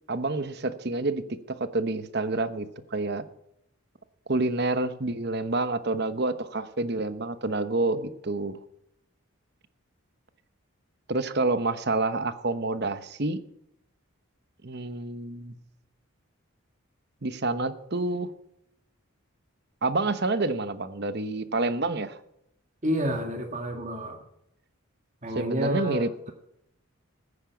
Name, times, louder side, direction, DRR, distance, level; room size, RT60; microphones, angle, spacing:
voice 1, 0.1-2.7 2.9-3.2 4.3-8.6 11.1-13.4 14.6-15.5 17.2-18.3 19.8-22.2 25.3-26.3, right 2 dB, 50° right, 12 dB, 1.0 m, -28 dB
voice 2, 22.8-24.2 25.2-26.3, equal, 35° right, 4 dB, 1.8 m, -29 dB
15.0 x 9.8 x 7.1 m, 0.78 s
head